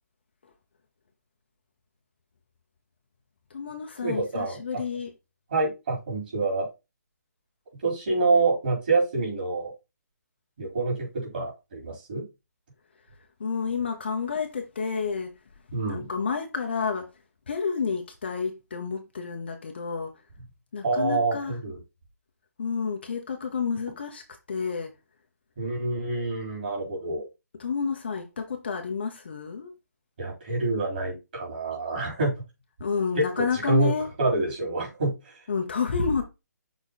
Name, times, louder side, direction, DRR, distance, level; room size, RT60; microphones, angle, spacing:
voice 1, 3.5-5.1 13.0-20.3 20.7-21.6 22.6-24.9 27.6-29.7 32.8-34.1 35.5-36.2, left 5 dB, 35° left, 1.0 m, -30 dB
voice 2, 4.0-4.6 5.5-6.7 7.8-9.7 10.6-12.3 15.7-16.1 20.8-21.8 25.6-27.3 30.2-32.3 33.2-33.9 34.2-35.4, right 3 dB, 30° right, 4.4 m, -27 dB
6.5 x 4.7 x 4.1 m
hypercardioid pair, 180°, 10 cm